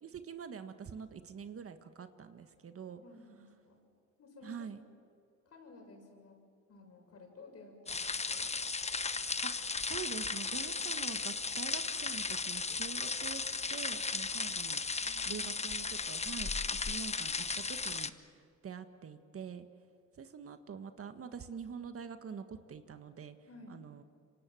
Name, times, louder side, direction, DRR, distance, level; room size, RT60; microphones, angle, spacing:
voice 1, 0.0-3.0 4.4-4.8 9.4-15.0 15.2-19.7 20.2-23.4 23.7-24.0, right 6 dB, 50° right, 9 dB, 1.6 m, -46 dB
voice 2, 3.0-3.8 4.2-5.0 5.5-6.4 6.7-8.5 15.0-15.5 23.5-23.8, left 2 dB, 55° left, 2 dB, 7.2 m, -55 dB
sound 1, 7.9-18.1, left 4 dB, 20° left, 0.9 m, -36 dB
27.0 x 24.5 x 7.7 m, 2.4 s
cardioid pair, 90°, 30 cm